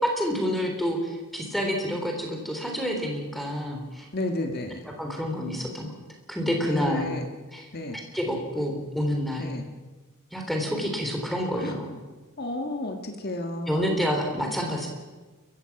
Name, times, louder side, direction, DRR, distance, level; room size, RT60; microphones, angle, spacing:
voice 1, 0.0-4.1 4.8-5.9 6.3-7.1 7.5-7.6 8.1-9.5 10.3-11.9 13.7-14.9, equal, ahead, 1 dB, 3.4 m, -28 dB
voice 2, 4.1-4.9 6.6-7.3 7.7-8.0 9.4-9.7 11.6-12.0 12.4-14.0, left 2 dB, 45° left, 3 dB, 1.8 m, -32 dB
29.0 x 15.5 x 6.0 m, 1.3 s
head